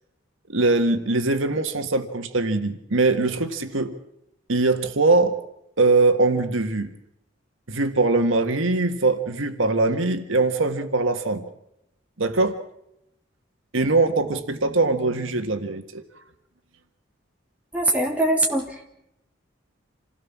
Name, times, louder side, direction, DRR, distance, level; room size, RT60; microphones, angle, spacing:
voice 1, 0.5-3.9 4.5-5.4 5.8-6.9 7.7-11.5 12.2-12.6 13.7-16.0, right 3 dB, 80° right, 7 dB, 1.6 m, -22 dB
voice 2, 17.7-18.8, right 1 dB, 5° right, -1 dB, 3.2 m, -22 dB
27.5 x 17.0 x 7.4 m, 0.81 s
head